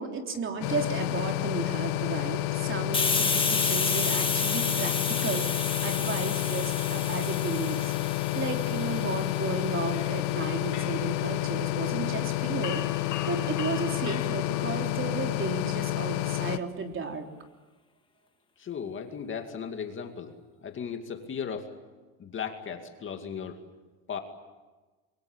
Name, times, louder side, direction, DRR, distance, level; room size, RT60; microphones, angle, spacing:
voice 1, 0.0-7.9 8.3-12.8 13.3-17.3, right 4 dB, 30° right, 4 dB, 3.5 m, -34 dB
sound 1, 0.6-16.6, left 18 dB, 75° left, 1.2 m, -30 dB
Hiss, 2.9-10.3, left 4 dB, 10° left, 1.8 m, -31 dB
sound 2, 9.7-14.9, left 10 dB, 45° left, 2.2 m, -40 dB
voice 2, 18.6-20.3 20.6-21.7 22.2-23.6 24.1-24.2, left 7 dB, 30° left, 5 dB, 2.4 m, -36 dB
27.5 x 23.5 x 8.9 m, 1.2 s
supercardioid pair, 130°, 42 cm